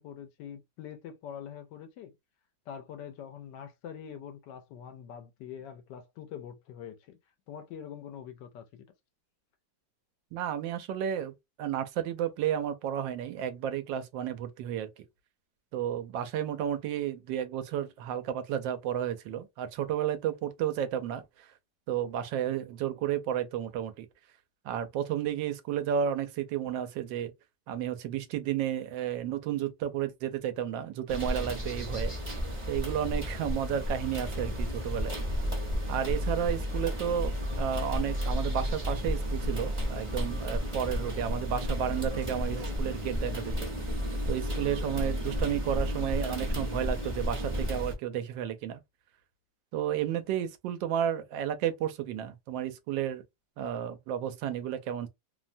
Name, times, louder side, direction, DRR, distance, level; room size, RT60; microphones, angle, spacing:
voice 1, 0.0-2.1 2.7-7.2 7.5-8.9, left 8 dB, 75° left, 1.2 m, -44 dB
voice 2, 10.3-11.3 11.6-14.9 15.7-21.5 21.9-24.1 24.6-27.3 27.7-32.1 32.7-35.2 35.9-43.7 44.3-48.8 49.7-53.2 53.6-55.1, right 10 dB, 85° right, 1.3 m, -32 dB
sound 1, 31.1-47.9, equal, 30° right, 0.6 m, -32 dB
3.2 x 2.1 x 2.5 m
omnidirectional pair, 2.0 m